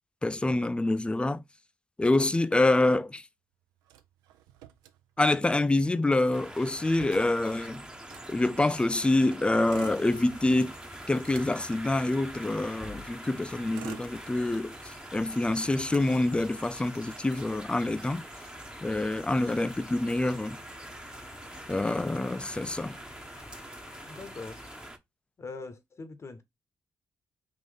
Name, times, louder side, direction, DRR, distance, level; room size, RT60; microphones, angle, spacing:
voice 1, 0.2-1.4 2.0-3.2 5.2-7.8 8.3-10.8 11.1-18.2 18.8-20.6 21.7-23.0, left 2 dB, 15° left, 0.4 m, -26 dB
Motor vehicle (road), 3.9-5.5 5.8-5.9 6.1-8.9 9.5-10.6 11.0-12.8 13.4-14.8 15.2-16.8, right 12 dB, 80° right, 0.4 m, -49 dB
sound 1, 6.3-25.0, right 1 dB, 15° right, 0.8 m, -45 dB
sound 2, 9.7-24.9, left 4 dB, 65° left, 1.2 m, -54 dB
voice 2, 24.1-24.6 25.4-26.4, left 3 dB, 45° left, 0.9 m, -42 dB
3.7 x 2.5 x 3.7 m
hypercardioid pair, 40°, 7 cm